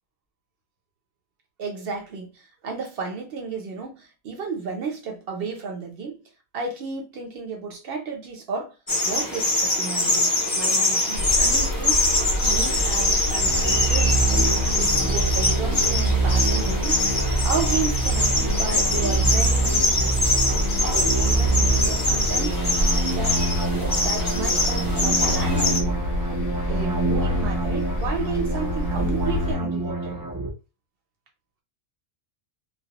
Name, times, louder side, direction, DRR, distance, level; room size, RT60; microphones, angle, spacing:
voice 1, 1.6-6.2 6.5-8.8 9.0-12.0 12.4-14.3 14.8-17.0 17.4-20.4 20.9-22.6 23.1-23.4 23.8-25.9 26.7-30.2, right 5 dB, 65° right, 0.9 m, -32 dB
sound 1, 8.9-25.8, left 2 dB, 25° left, 0.5 m, -24 dB
sound 2, 11.1-29.6, equal, 65° left, 0.7 m, -28 dB
sound 3, 13.4-30.5, right 3 dB, 35° right, 0.3 m, -26 dB
2.2 x 2.1 x 2.9 m
omnidirectional pair, 1.1 m